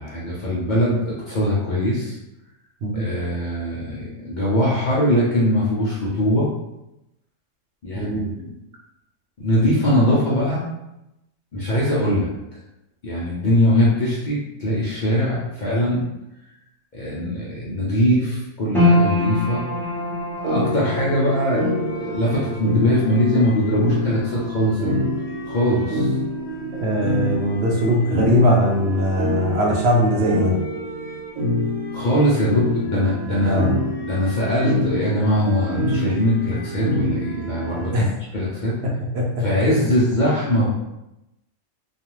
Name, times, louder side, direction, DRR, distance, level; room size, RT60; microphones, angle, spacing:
voice 1, 0.0-2.2 2.9-6.5 7.8-8.5 9.4-10.7 11.5-12.3 13.0-16.0 16.9-19.7 20.4-21.7 22.0-24.9 25.4-26.1 31.9-33.6 34.0-37.9 38.3-38.8 39.4-40.7, equal, 55° left, -7 dB, 0.5 m, -21 dB
voice 2, 7.9-8.3 26.8-30.5 33.4-33.7 37.9-38.1 39.1-39.4, equal, 65° right, -2 dB, 0.8 m, -20 dB
sound 1, 18.7-31.2 31.4-32.4 32.8-32.9, left 1 dB, 5° left, 0.5 m, -28 dB
sound 2, 20.4-37.9, left 1 dB, 85° right, 1.2 m, -26 dB
2.4 x 2.3 x 3.0 m, 0.92 s
omnidirectional pair, 1.3 m